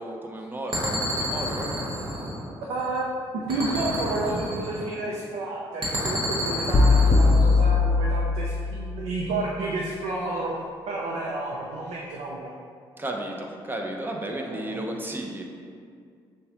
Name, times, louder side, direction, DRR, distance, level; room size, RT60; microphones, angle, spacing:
voice 1, 0.0-1.8 13.0-15.4, right 1 dB, 20° right, 1 dB, 0.7 m, -33 dB
sound 1, 0.7-3.0 3.5-5.1 5.8-7.7, equal, 50° right, 1.2 m, -30 dB
voice 2, 2.7-3.1 3.3-10.5 10.9-12.5 14.3-14.8, right 2 dB, 80° right, -3 dB, 0.5 m, -31 dB
sound 2, 6.7-8.8, left 3 dB, 35° left, 0.5 m, -19 dB
6.5 x 2.2 x 2.9 m, 2.2 s
supercardioid pair, 60°, 11 cm